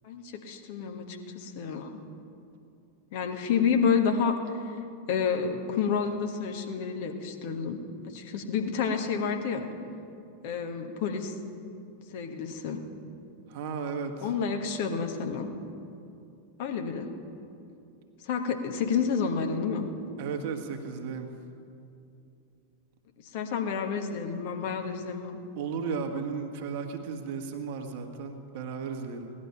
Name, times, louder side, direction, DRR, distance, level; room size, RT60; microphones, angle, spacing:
voice 1, 0.0-2.0 3.1-4.8 5.1-9.7 10.4-11.3 12.1-12.8 14.2-15.5 16.6-17.1 18.2-19.9 23.2-25.4, left 6 dB, 50° left, 4 dB, 1.4 m, -29 dB
voice 2, 13.5-14.2 20.2-21.3 25.5-29.3, right 5 dB, 50° right, 4 dB, 1.6 m, -34 dB
17.5 x 11.0 x 5.8 m, 2.6 s
figure-of-eight pair, 90°, 0 cm